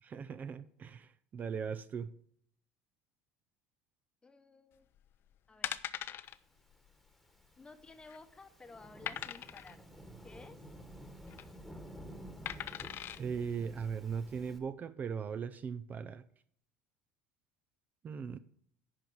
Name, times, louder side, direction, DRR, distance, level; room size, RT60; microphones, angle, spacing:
voice 1, 0.0-2.1 13.2-16.2 18.0-18.4, right 6 dB, 35° right, 13 dB, 0.4 m, -39 dB
voice 2, 4.2-4.9 5.5-5.8 7.6-9.9 10.2-10.6, left 3 dB, 20° left, 9 dB, 0.9 m, -54 dB
sound 1, 5.0-5.2 5.6-6.4 6.7-6.9 7.1-7.2 7.8-8.3 9.1-9.7 11.1-11.4 12.5-13.2 13.8-13.9, left 11 dB, 45° left, 0.5 m, -40 dB
Thunderstorm / Rain, 6.9-14.6, equal, ahead, 1.4 m, -52 dB
10.5 x 4.6 x 6.2 m, 0.64 s
supercardioid pair, 95°, 5 cm